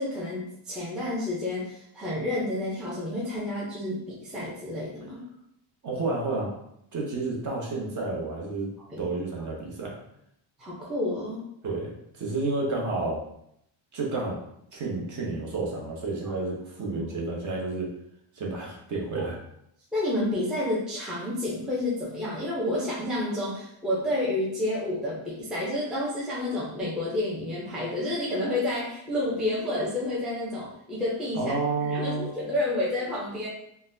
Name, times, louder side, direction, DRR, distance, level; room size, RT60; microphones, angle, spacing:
voice 1, 0.0-5.2 8.9-9.0 10.6-11.4 16.8-17.0 19.9-31.5 31.8-33.5, left 1 dB, ahead, -7 dB, 0.4 m, -30 dB
voice 2, 5.8-6.5 6.9-8.7 9.0-9.9 11.6-13.2 13.9-14.4 14.7-17.9 18.3-19.4 31.3-32.3, right 3 dB, 40° right, -2 dB, 0.8 m, -30 dB
3.9 x 2.2 x 2.6 m, 0.75 s
cardioid pair, 170°, 48 cm